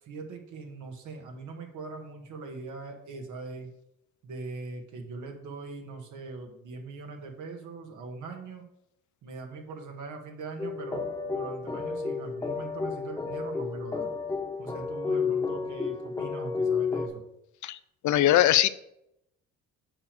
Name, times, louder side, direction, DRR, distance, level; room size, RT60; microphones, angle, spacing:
voice 1, 0.0-3.7 4.2-8.7 9.2-14.1 14.6-17.2, right 3 dB, 75° right, 3 dB, 1.9 m, -41 dB
sound 1, 10.6-17.1, left 5 dB, 10° left, 1.3 m, -31 dB
voice 2, 18.0-18.7, left 13 dB, 70° left, 15 dB, 0.6 m, -21 dB
7.0 x 5.3 x 6.9 m, 0.81 s
cardioid pair, 90°, 30 cm